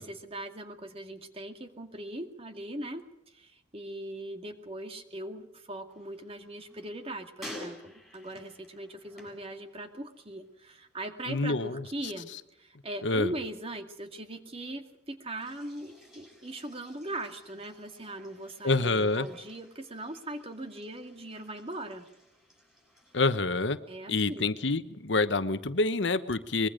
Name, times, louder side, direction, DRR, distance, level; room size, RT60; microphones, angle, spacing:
voice 1, 0.0-3.0 3.3-12.3 12.6-22.0 23.9-24.5, right 1 dB, 30° right, 6 dB, 2.2 m, -40 dB
sound 1, 5.9-10.3 10.6-11.1 15.3-23.2, left 1 dB, ahead, 7.5 m, -52 dB
voice 2, 11.3-11.8 13.0-13.3 18.6-19.3 23.1-23.8 24.1-26.7, left 3 dB, 80° left, 11 dB, 1.1 m, -27 dB
24.0 x 22.0 x 5.1 m, 0.86 s
head